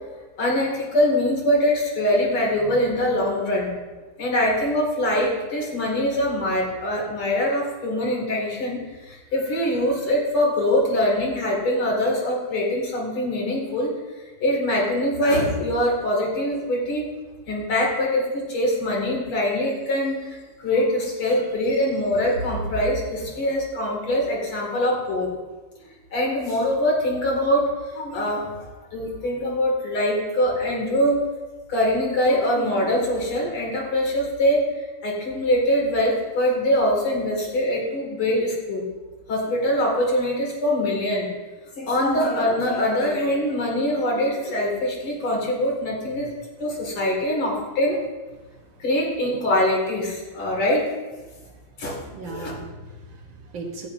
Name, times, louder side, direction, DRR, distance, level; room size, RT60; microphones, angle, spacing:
voice 1, 0.4-3.7 4.2-13.9 14.4-17.1 17.5-25.3 26.1-31.2 31.7-34.6 35.0-38.8 39.3-41.3 41.8-46.3 46.6-48.0 48.8-50.9 51.8-52.0 52.2-52.5, left 1 dB, 80° left, -3 dB, 3.2 m, -23 dB
voice 2, 52.1-53.9, right 3 dB, 65° right, 2 dB, 1.8 m, -37 dB
14.0 x 9.3 x 2.7 m, 1.2 s
omnidirectional pair, 2.4 m